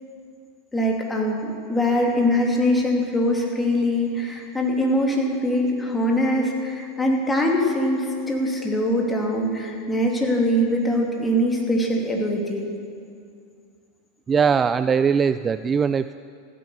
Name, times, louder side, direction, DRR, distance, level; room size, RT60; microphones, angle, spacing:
voice 1, 0.7-12.7, equal, 15° left, 0 dB, 2.9 m, -22 dB
voice 2, 14.3-16.2, right 6 dB, 25° right, 13 dB, 0.3 m, -20 dB
15.5 x 10.0 x 7.2 m, 2.3 s
hypercardioid pair, 90°, 0 cm